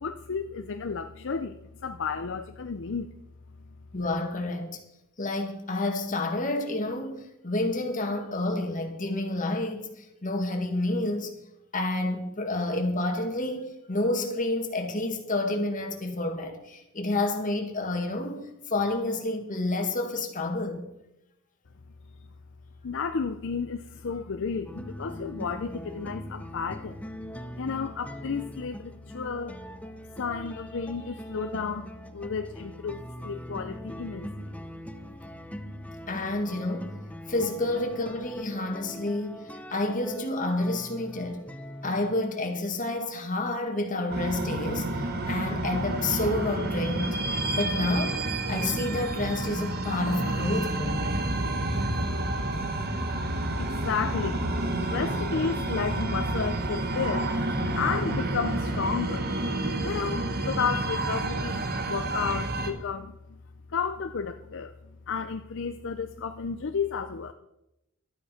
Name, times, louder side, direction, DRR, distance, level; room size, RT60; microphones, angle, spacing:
voice 1, 0.0-3.2 22.8-29.6 30.2-34.5 53.6-54.4 54.8-57.3 57.6-59.3 59.8-63.4 63.7-67.3, left 5 dB, 60° left, 0.6 m, -32 dB
voice 2, 3.9-4.8 5.2-7.1 7.4-11.3 11.7-18.4 18.7-20.9 36.1-37.0 37.3-41.5 41.8-47.2 47.6-51.0, left 2 dB, 40° left, 2.0 m, -29 dB
sound 1, 24.7-42.2, equal, 5° left, 0.7 m, -42 dB
sound 2, 44.1-62.7, right 1 dB, 45° right, 1.5 m, -29 dB
12.5 x 9.1 x 5.7 m
head